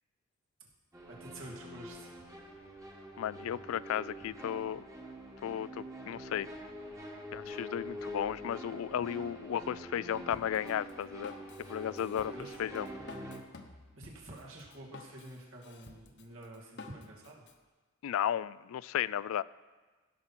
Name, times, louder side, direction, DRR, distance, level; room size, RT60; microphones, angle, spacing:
sound 1, 0.9-13.4, equal, 15° right, 1.3 m, -45 dB
voice 1, 1.0-2.3 12.3-12.6 13.9-17.4, right 1 dB, 75° right, -3 dB, 2.5 m, -49 dB
voice 2, 3.2-4.8 5.4-6.5 7.3-11.3 11.6-12.3 12.6-12.9 18.0-19.4, left 9 dB, 85° left, 20 dB, 0.3 m, -34 dB
Drum kit, 10.3-17.5, left 3 dB, 60° left, 1.0 m, -52 dB
16.0 x 5.8 x 6.1 m, 1.3 s
head